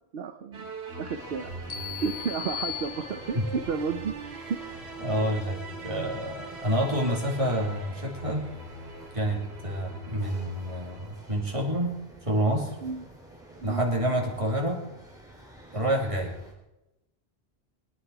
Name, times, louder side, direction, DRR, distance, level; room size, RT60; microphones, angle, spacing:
voice 1, 0.1-0.7 1.0-1.7 2.0-4.1 5.1-5.3 12.8-13.1 13.6-13.8, right 6 dB, 65° right, 7 dB, 1.0 m, -32 dB
sound 1, 0.5-11.9, right 3 dB, 85° right, 2.4 m, -42 dB
sound 2, 1.1-16.5, right 1 dB, 5° right, 3.8 m, -49 dB
sound 3, 1.7-3.6, left 11 dB, 55° left, 1.4 m, -37 dB
voice 2, 5.0-8.4 9.1-11.9 12.2-12.7 13.6-14.8 15.7-16.3, equal, 30° right, 0 dB, 2.9 m, -28 dB
21.5 x 10.0 x 4.7 m, 0.94 s
omnidirectional pair, 1.1 m